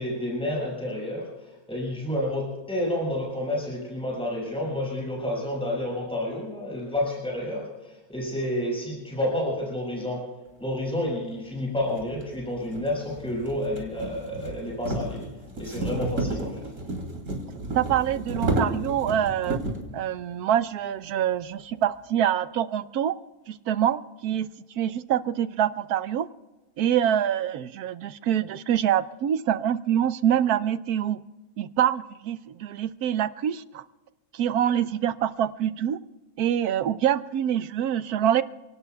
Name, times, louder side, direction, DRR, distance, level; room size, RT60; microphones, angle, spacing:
voice 1, 0.0-10.2 10.6-15.2 15.6-16.8, left 1 dB, 5° left, -3 dB, 6.0 m, -30 dB
sound 1, 11.1-11.2 11.9-19.9, right 2 dB, 70° right, 3.4 m, -32 dB
voice 2, 17.7-19.6 19.9-23.2 23.5-24.5 24.8-26.3 26.8-31.2 31.6-33.8 34.3-36.0 36.4-38.4, right 10 dB, 85° right, 14 dB, 1.2 m, -25 dB
29.5 x 18.0 x 2.3 m, 1.1 s
omnidirectional pair, 1.6 m